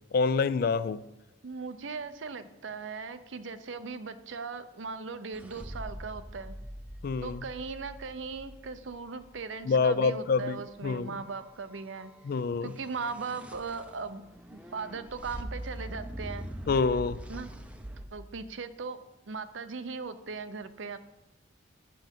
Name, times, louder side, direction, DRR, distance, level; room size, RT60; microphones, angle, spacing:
voice 1, 0.1-1.0 7.0-7.4 9.7-11.1 12.2-12.7 16.7-17.2, left 4 dB, 50° left, 0.3 m, -27 dB
voice 2, 1.4-6.6 7.2-12.1 12.6-14.2 14.5-16.5 17.3-17.5 18.1-21.0, right 4 dB, 80° right, 0.6 m, -38 dB
sound 1, 5.3-9.4 12.7-18.1, right 1 dB, 5° right, 0.5 m, -42 dB
7.7 x 7.3 x 5.3 m
head